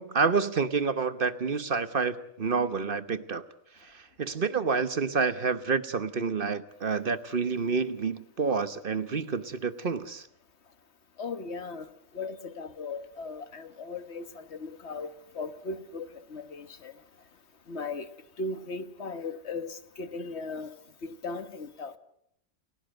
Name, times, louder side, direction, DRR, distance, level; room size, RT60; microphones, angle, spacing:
voice 1, 0.0-3.4 3.8-10.3, right 5 dB, 45° right, 1.2 m, -28 dB
voice 2, 11.2-11.9 12.1-16.9 17.7-18.1 18.4-20.7 21.0-21.9, left 3 dB, 55° left, 1.6 m, -37 dB
30.0 x 17.0 x 7.9 m
omnidirectional pair, 1.3 m